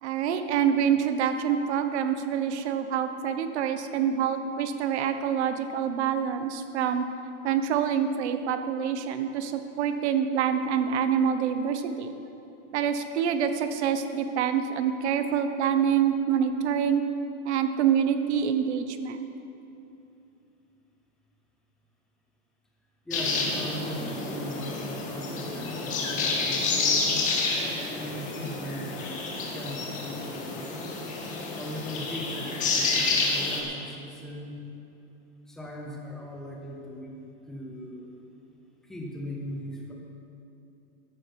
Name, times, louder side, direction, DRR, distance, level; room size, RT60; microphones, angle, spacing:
voice 1, 0.0-7.0 7.4-12.1 12.7-17.0 17.4-19.3, right 8 dB, 65° right, 9 dB, 1.0 m, -26 dB
sound 1, 23.1-33.6, left 3 dB, 20° left, 1.7 m, -29 dB
voice 2, 23.1-27.0 27.9-29.2 29.5-30.7 31.6-34.6 35.5-38.2 38.8-39.9, equal, ahead, -2 dB, 0.4 m, -39 dB
14.5 x 11.0 x 5.3 m, 2.8 s
supercardioid pair, 180°, 37 cm